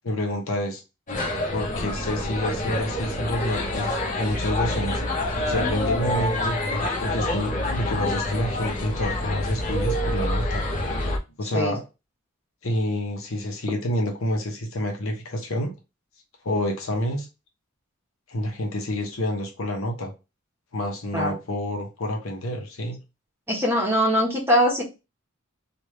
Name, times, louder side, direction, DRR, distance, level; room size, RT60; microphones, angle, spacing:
voice 1, 0.0-0.8 1.5-5.0 5.5-6.6 7.0-10.7 11.4-11.8 12.6-15.7 16.4-17.3 18.3-20.1 20.7-23.0, left 1 dB, 70° left, 0.9 m, -28 dB
sound 1, 1.1-11.2, left 1 dB, 35° left, 0.8 m, -27 dB
voice 2, 23.5-24.8, equal, 10° right, 1.2 m, -21 dB
3.2 x 2.5 x 3.1 m
head